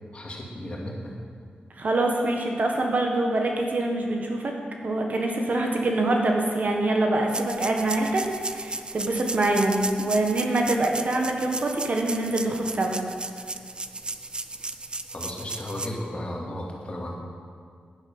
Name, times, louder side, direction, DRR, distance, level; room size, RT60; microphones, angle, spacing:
voice 1, 0.1-1.1 15.1-17.1, left 1 dB, 35° left, -2 dB, 2.3 m, -34 dB
voice 2, 1.8-4.5 4.8-13.0, right 2 dB, 50° right, 1 dB, 1.5 m, -25 dB
sound 1, 7.3-15.9, right 2 dB, 30° right, 0.5 m, -35 dB
10.5 x 9.8 x 5.6 m, 2.1 s
wide cardioid pair, 95°, 3 cm